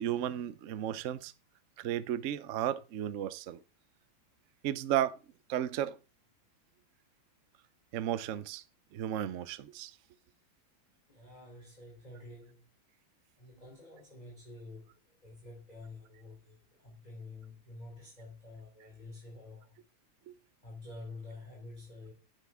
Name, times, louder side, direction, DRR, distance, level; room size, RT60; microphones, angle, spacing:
voice 1, 0.0-1.3 1.8-3.6 4.6-5.2 5.5-6.0 7.9-8.6 8.9-9.9 20.3-20.4, right 11 dB, 85° right, 0.6 m, -34 dB
voice 2, 11.1-12.7 13.4-19.8 20.6-22.1, left 2 dB, 20° left, 3.4 m, -49 dB
10.5 x 9.4 x 3.6 m
omnidirectional pair, 2.3 m